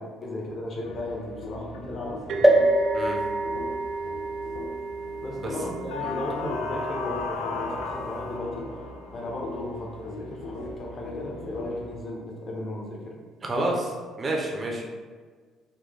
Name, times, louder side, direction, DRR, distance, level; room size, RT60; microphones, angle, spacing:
voice 1, 0.0-2.6 5.2-8.6 9.1-13.1, left 1 dB, 45° left, -2 dB, 0.9 m, -35 dB
sound 1, 0.8-12.0, left 3 dB, 85° left, 0.4 m, -37 dB
sound 2, 2.3-9.8, right 5 dB, 65° right, 0.4 m, -37 dB
sound 3, 2.4-6.1 6.7-6.8 7.0-7.1, right 1 dB, 5° right, 0.5 m, -25 dB
voice 2, 13.4-13.9 14.2-14.8, right 2 dB, 35° right, 0 dB, 0.7 m, -28 dB
3.9 x 3.1 x 2.3 m, 1.5 s
supercardioid pair, 70°, 0 cm